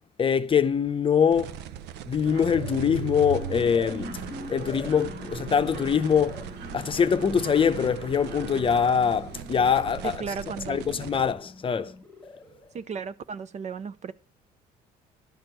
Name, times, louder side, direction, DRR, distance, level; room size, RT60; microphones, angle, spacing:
voice 1, 0.2-1.6 2.1-4.2 4.5-6.4 6.7-10.2 10.7-12.0, left 7 dB, 30° left, 0.7 m, -23 dB
sound 1, 1.3-11.3, right 10 dB, 85° right, 0.6 m, -41 dB
sound 2, 2.2-12.7, left 2 dB, 10° left, 1.6 m, -43 dB
Mechanisms, 2.3-9.0, right 8 dB, 70° right, 1.3 m, -40 dB
voice 2, 10.0-10.8 12.7-14.1, right 6 dB, 45° right, 0.6 m, -35 dB
11.5 x 4.4 x 7.8 m
cardioid pair, 110°, 17 cm